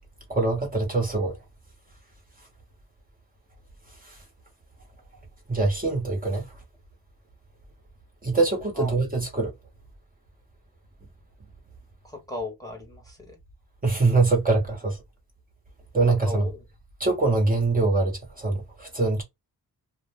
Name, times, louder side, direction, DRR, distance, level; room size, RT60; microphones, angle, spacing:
voice 1, 0.3-1.4 4.0-4.2 5.5-6.5 8.2-9.5 13.8-15.0 15.9-16.5 17.0-19.2, right 3 dB, 20° right, 1.0 m, -23 dB
voice 2, 12.0-13.4 16.1-16.6, left 2 dB, 10° left, 1.1 m, -36 dB
2.4 x 2.1 x 3.4 m
cardioid pair, 95°, 38 cm